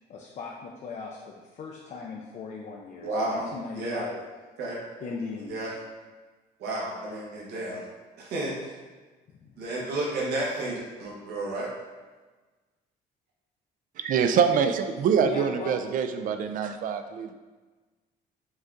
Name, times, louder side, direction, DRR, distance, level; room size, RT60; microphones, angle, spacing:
voice 1, 0.1-4.2 5.0-5.7 9.3-9.5 15.2-15.8, left 5 dB, 45° left, -1 dB, 0.5 m, -38 dB
voice 2, 3.0-3.4 3.7-4.0 4.6-4.8 5.5-5.7 6.6-7.8 8.2-8.7 9.6-11.7, right 2 dB, 75° right, -4 dB, 1.1 m, -31 dB
voice 3, 14.0-17.4, right 7 dB, 55° right, 8 dB, 0.4 m, -25 dB
5.3 x 2.3 x 3.8 m, 1.3 s
cardioid pair, 110°, 17 cm